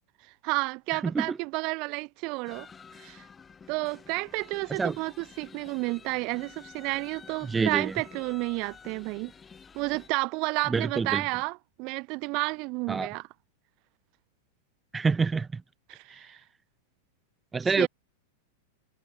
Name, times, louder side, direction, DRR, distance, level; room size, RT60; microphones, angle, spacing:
voice 1, 0.4-2.7 3.0-3.2 3.7-9.3 9.7-13.3 15.9-16.3 17.6-17.9, right 27 dB, 45° right, 2.5 m, -31 dB
sound 1, 2.4-10.1, left 6 dB, 15° left, 2.1 m, -50 dB
voice 2, 7.5-7.9 10.7-11.2 12.9-13.1 14.9-15.5 17.5-17.9, right 4 dB, 10° right, 0.3 m, -26 dB
supercardioid pair, 145°, 0 cm